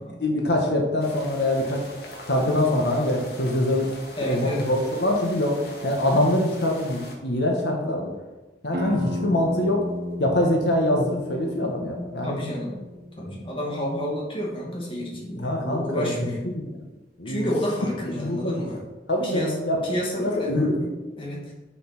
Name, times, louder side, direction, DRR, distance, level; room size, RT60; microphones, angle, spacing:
voice 1, 0.2-1.9 2.3-3.9 4.2-8.1 8.6-9.8 10.2-12.4 15.4-16.8 17.2-17.5 18.2-18.7 19.1-19.8 20.2-20.8, left 1 dB, 80° left, 1 dB, 1.6 m, -24 dB
sound 1, 1.0-7.2, left 1 dB, 65° left, 2.0 m, -42 dB
voice 2, 4.2-4.6 12.2-12.8 13.2-16.4 17.3-18.8 19.2-19.5 19.8-20.9 21.2-21.4, equal, 30° left, -3 dB, 2.4 m, -30 dB
sound 2, 8.7-14.1, left 1 dB, 60° right, 1.4 m, -33 dB
7.2 x 7.0 x 6.1 m, 1.2 s
head